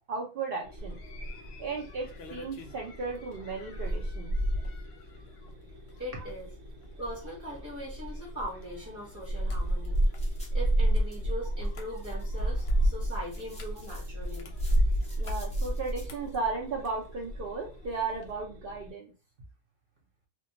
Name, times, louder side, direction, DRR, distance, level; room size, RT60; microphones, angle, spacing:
voice 1, 0.1-1.0 1.6-4.3 6.1-6.2 15.2-19.1, right 4 dB, 60° right, 0 dB, 0.6 m, -35 dB
sound 1, 0.6-18.9, left 1 dB, 85° right, 1.1 m, -51 dB
sound 2, 0.8-17.5 17.8-18.3, right 1 dB, 65° left, 0.7 m, -31 dB
voice 2, 6.0-6.5 7.0-10.0 10.5-14.6, equal, 15° right, -6 dB, 0.7 m, -40 dB
sound 3, 9.6-16.1, equal, 10° left, 0.4 m, -56 dB
2.2 x 2.2 x 2.6 m, 0.33 s
omnidirectional pair, 1.3 m